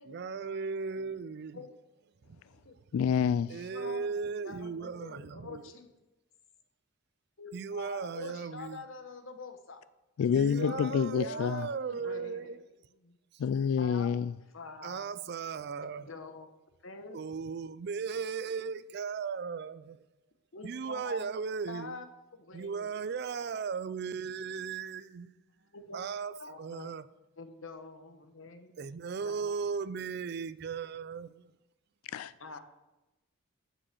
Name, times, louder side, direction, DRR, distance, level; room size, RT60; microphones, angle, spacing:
voice 1, 0.1-1.7 2.3-2.4 2.9-5.6 7.5-8.8 10.3-12.6 13.3-13.4 14.8-16.1 17.1-20.0 20.6-22.0 22.5-25.4 25.9-27.1 28.8-31.5, right 5 dB, 50° right, 0.3 m, -37 dB
voice 2, 2.9-3.6 10.2-11.7 13.4-14.3 32.1-32.3, left 7 dB, 90° left, 0.3 m, -28 dB
voice 3, 3.7-5.9 7.4-9.8 10.4-12.5 13.0-13.2 13.8-14.1 14.5-15.1 16.0-16.5 16.8-17.2 20.5-21.3 21.7-22.1 22.4-22.9 25.7-26.0 26.4-26.9 27.4-28.7 29.2-29.5 32.4-32.6, left 3 dB, 65° left, 1.0 m, -45 dB
7.8 x 6.2 x 6.6 m
head